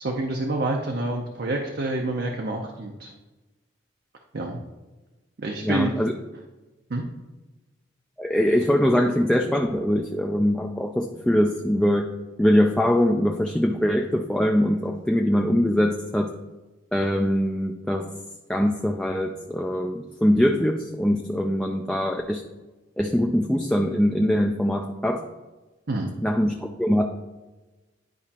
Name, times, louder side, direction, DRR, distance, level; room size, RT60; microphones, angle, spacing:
voice 1, 0.0-3.1 4.3-4.6 5.4-5.9 6.9-7.0 25.9-26.2, right 2 dB, 60° right, 1 dB, 0.6 m, -27 dB
voice 2, 5.6-6.1 8.2-12.1 12.4-16.3 16.9-18.1 18.5-22.4 23.0-25.2 26.2-27.0, equal, 5° left, 2 dB, 0.3 m, -22 dB
10.5 x 4.9 x 2.9 m, 1.2 s
head